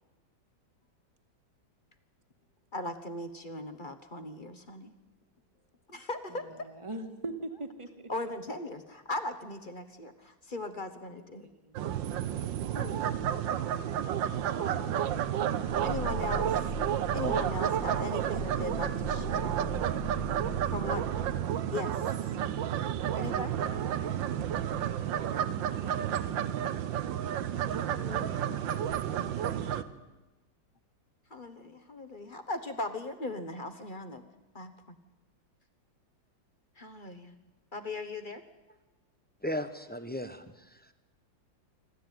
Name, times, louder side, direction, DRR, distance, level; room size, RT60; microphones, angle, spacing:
voice 1, 2.7-4.9 5.9-6.7 8.1-11.5 12.7-13.3 14.6-15.2 15.8-16.5 17.1-19.6 20.7-21.0 21.7-22.1 23.2-23.7 27.8-28.4 31.3-34.2 34.5-35.0 36.8-37.3 37.7-38.4, left 2 dB, 30° left, 9 dB, 1.2 m, -38 dB
voice 2, 6.3-8.1 11.1-11.8, right 2 dB, 15° right, 6 dB, 1.7 m, -43 dB
sound 1, 11.8-29.8, right 10 dB, 75° right, 1.6 m, -31 dB
Growling, 15.6-21.5, left 2 dB, 70° left, 4.5 m, -41 dB
voice 3, 39.4-40.9, equal, 15° left, 10 dB, 0.4 m, -36 dB
27.5 x 12.5 x 9.3 m, 1.1 s
omnidirectional pair, 2.1 m